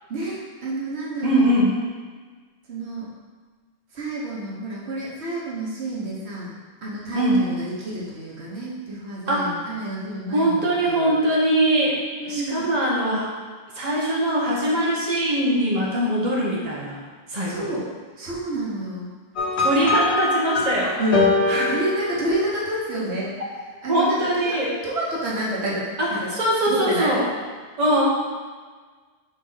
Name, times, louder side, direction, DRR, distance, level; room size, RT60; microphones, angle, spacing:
voice 1, 0.1-1.5 2.7-3.1 3.9-6.5 6.8-11.1 12.2-12.7 17.4-17.9 18.2-19.1 21.0-21.3 21.7-23.3 23.8-26.2 26.6-27.1, right 1 dB, 80° right, -5 dB, 1.5 m, -29 dB
voice 2, 1.2-1.7 7.1-7.4 9.3-9.5 10.3-12.0 12.2-13.3 13.7-17.0 17.3-17.7 19.6-21.0 21.5-21.7 23.9-24.7 26.0-27.2 27.8-28.0, right 1 dB, 40° right, -5 dB, 1.3 m, -22 dB
sound 1, 19.4-22.8, left 3 dB, 80° left, 1.2 m, -23 dB
7.0 x 4.0 x 3.9 m, 1.4 s
omnidirectional pair, 1.1 m